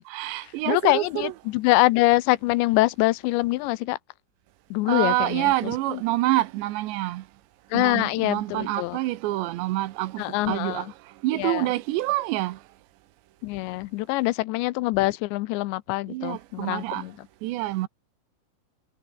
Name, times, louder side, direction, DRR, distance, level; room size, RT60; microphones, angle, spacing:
voice 1, 0.1-1.3 4.9-7.2 7.7-10.9 11.2-12.6 16.1-17.1 17.4-17.9, right 17 dB, 80° right, 3.1 m, -27 dB
voice 2, 0.7-4.0 4.7-6.0 7.7-9.0 10.2-10.9 11.4-11.7 13.4-17.1, left 19 dB, 85° left, 2.9 m, -24 dB
omnidirectional pair, 5.2 m